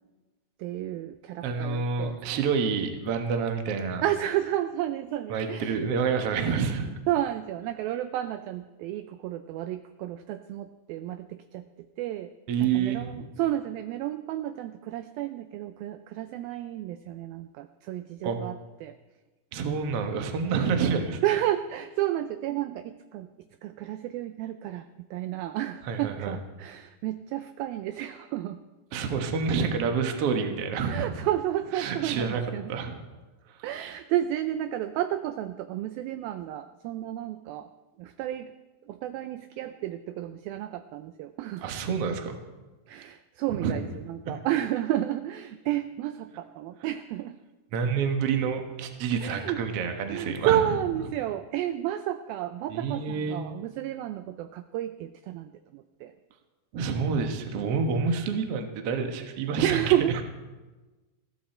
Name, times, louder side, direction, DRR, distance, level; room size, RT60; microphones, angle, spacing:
voice 1, 0.6-2.2 4.0-5.8 7.1-12.3 12.6-18.6 18.8-19.0 21.2-23.3 23.6-28.6 30.9-32.7 33.6-37.7 38.0-38.5 38.9-41.7 42.9-47.4 49.2-49.6 50.1-56.1 59.6-60.2, right 12 dB, 85° right, 10 dB, 2.1 m, -31 dB
voice 2, 1.4-4.0 5.3-6.9 12.5-13.2 18.2-18.4 19.5-21.2 25.8-26.4 28.9-31.1 31.7-32.4 32.7-33.0 33.8-33.9 41.6-42.4 43.5-43.7 44.2-44.4 47.7-50.6 52.7-53.4 56.7-59.8, right 5 dB, 60° right, 5 dB, 1.5 m, -28 dB
20.0 x 15.5 x 4.4 m, 1.2 s
omnidirectional pair, 4.9 m